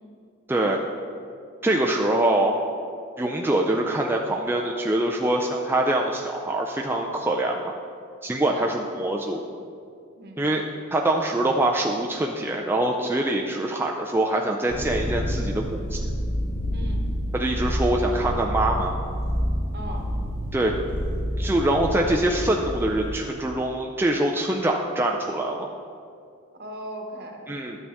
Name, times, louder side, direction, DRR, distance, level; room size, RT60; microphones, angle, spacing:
voice 1, 0.5-0.8 1.6-2.6 3.2-7.8 8.2-9.4 10.4-10.6 10.9-16.0 17.3-18.9 20.5-20.7 21.4-25.7 27.5-27.8, right 1 dB, 10° right, 0 dB, 0.4 m, -24 dB
voice 2, 8.4-8.8 10.2-10.4 16.7-17.0 19.7-20.1 26.6-27.5, right 1 dB, 50° right, 2 dB, 1.1 m, -37 dB
sound 1, 14.7-23.2, equal, 80° left, 1.6 m, -28 dB
11.0 x 6.7 x 3.5 m, 2.4 s
head